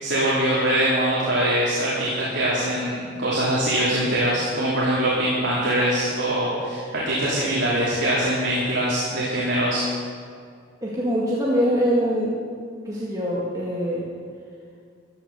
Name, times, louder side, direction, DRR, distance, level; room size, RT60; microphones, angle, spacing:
voice 1, 0.0-9.9, right 1 dB, 70° right, -8 dB, 3.1 m, -23 dB
voice 2, 10.8-12.3 12.9-14.0, equal, 20° right, -6 dB, 1.9 m, -23 dB
14.5 x 10.5 x 6.8 m, 2.2 s
head